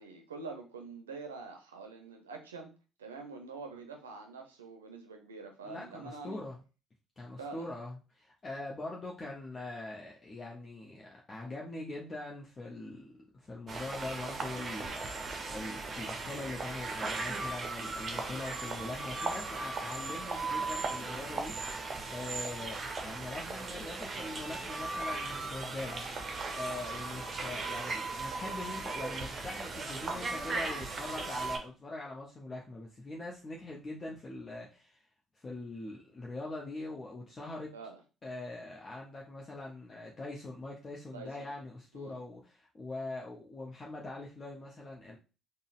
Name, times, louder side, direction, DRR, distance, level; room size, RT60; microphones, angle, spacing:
voice 1, 0.0-2.7 3.0-6.4 7.4-7.7 37.7-38.0 41.1-41.5 41.9-42.1, right 4 dB, 85° right, 0.5 m, -45 dB
voice 2, 5.6-6.6 7.2-35.0 35.4-37.7 38.2-45.2, left 2 dB, 35° left, 0.7 m, -42 dB
sound 1, 13.7-31.6, right 3 dB, 40° right, 0.6 m, -37 dB
3.8 x 2.1 x 2.4 m
figure-of-eight pair, 50°, 0 cm